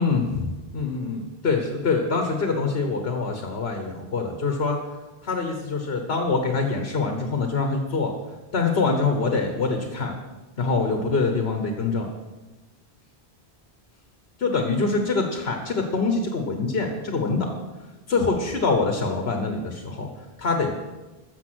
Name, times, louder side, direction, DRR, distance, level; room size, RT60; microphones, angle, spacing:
voice 1, 0.0-4.8 5.2-8.1 8.5-10.1 10.6-12.1 14.4-17.5 18.1-20.1 20.4-20.7, left 4 dB, 75° left, 4 dB, 1.4 m, -24 dB
14.0 x 7.0 x 6.2 m, 1.2 s
omnidirectional pair, 1.0 m